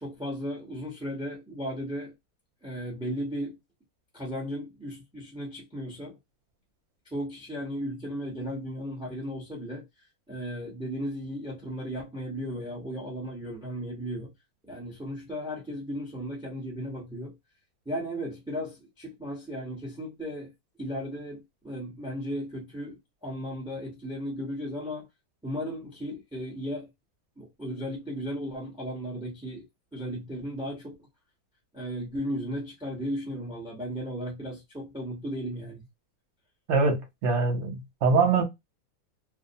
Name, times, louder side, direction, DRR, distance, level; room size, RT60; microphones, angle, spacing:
voice 1, 0.0-2.1 2.6-3.6 4.1-6.2 7.1-9.8 10.3-14.3 14.7-17.3 17.9-20.5 20.8-25.1 25.4-26.9 27.4-29.6 29.9-30.9 31.7-35.8, equal, 5° right, 0.7 m, -35 dB
voice 2, 36.7-38.4, right 4 dB, 55° right, 1.0 m, -23 dB
2.6 x 2.1 x 2.7 m
omnidirectional pair, 1.6 m